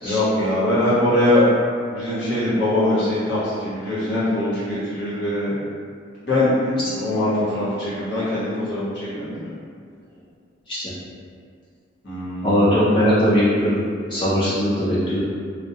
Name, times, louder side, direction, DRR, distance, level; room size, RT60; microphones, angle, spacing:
voice 1, 0.0-1.5 1.9-5.5 6.2-9.5 12.0-12.7, left 1 dB, 60° left, -10 dB, 0.9 m, -22 dB
voice 2, 12.4-13.8 14.1-15.2, equal, 25° left, -9 dB, 0.3 m, -19 dB
2.1 x 2.1 x 2.7 m, 2.2 s
head